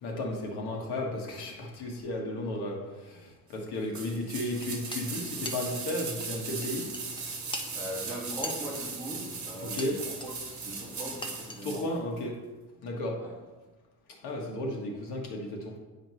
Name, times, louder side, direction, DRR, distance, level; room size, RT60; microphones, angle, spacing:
voice 1, 0.0-6.9 7.3-7.4 9.6-10.0 11.6-12.4 12.8-13.2 14.2-15.8, left 1 dB, 85° left, 0 dB, 1.5 m, -34 dB
sound 1, 3.9-11.9 12.2-12.3, right 4 dB, 50° right, 1.5 m, -38 dB
sound 2, 4.5-11.6, left 2 dB, 15° left, 0.5 m, -44 dB
voice 2, 7.7-10.3 10.6-11.8 13.2-13.3, right 1 dB, 5° right, -7 dB, 1.8 m, -40 dB
9.3 x 5.0 x 3.1 m, 1.3 s
cardioid pair, 155°, 37 cm